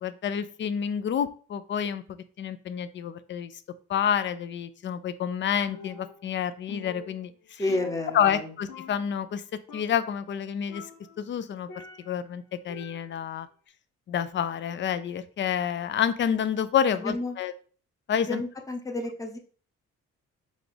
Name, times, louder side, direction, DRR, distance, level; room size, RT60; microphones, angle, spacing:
voice 1, 0.0-2.0 2.4-3.5 3.9-7.6 8.1-9.4 9.7-10.8 11.2-11.7 12.1-13.5 14.1-17.5 18.1-18.4, left 8 dB, 40° left, 13 dB, 0.4 m, -28 dB
Percussion, 5.7-6.4 6.7-8.4 8.7-9.4 9.7-10.2 10.7-12.3 12.7-13.4, left 6 dB, 85° left, 0.7 m, -46 dB
voice 2, 7.6-8.5 16.9-17.3 18.2-19.4, left 2 dB, 10° left, 3 dB, 0.7 m, -31 dB
4.0 x 2.3 x 3.3 m, 0.41 s
cardioid pair, 90°, 30 cm